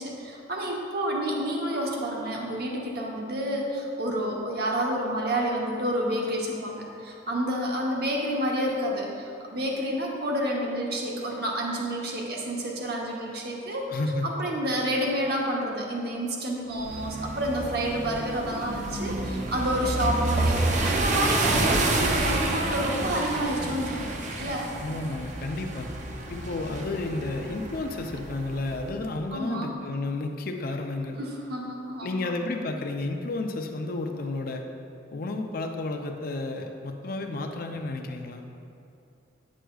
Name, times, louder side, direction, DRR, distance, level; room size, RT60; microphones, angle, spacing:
voice 1, 0.0-13.9 14.2-20.6 20.9-24.7 29.3-29.7 31.2-32.3, equal, 55° right, -1 dB, 1.0 m, -29 dB
voice 2, 13.9-14.3 24.8-25.9 26.3-31.2 32.0-34.6 35.1-38.4, left 2 dB, 50° left, 4 dB, 0.5 m, -32 dB
sound 1, 16.7-28.9, right 2 dB, 40° right, 0.5 m, -29 dB
9.0 x 6.2 x 2.3 m, 2.7 s
head